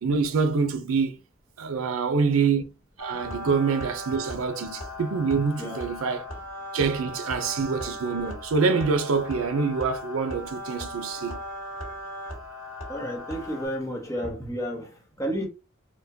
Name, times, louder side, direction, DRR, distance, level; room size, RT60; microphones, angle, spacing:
voice 1, 0.0-1.2 1.6-2.6 3.0-6.2 6.7-11.4, right 5 dB, 90° right, 0.5 m, -25 dB
sound 1, 3.0-13.7, left 1 dB, 90° left, 1.9 m, -38 dB
voice 2, 12.9-15.5, equal, 15° left, 0.8 m, -32 dB
4.5 x 2.2 x 2.7 m
head